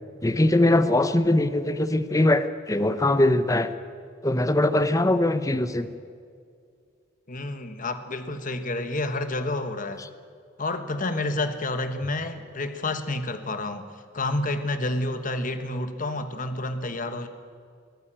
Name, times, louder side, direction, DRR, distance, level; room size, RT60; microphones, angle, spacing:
voice 1, 0.2-3.7 4.2-5.9, left 1 dB, 15° left, 11 dB, 0.8 m, -21 dB
voice 2, 7.3-10.0 10.6-13.9 14.1-17.3, left 2 dB, 45° left, 9 dB, 1.3 m, -29 dB
22.5 x 14.5 x 8.9 m, 2.2 s
head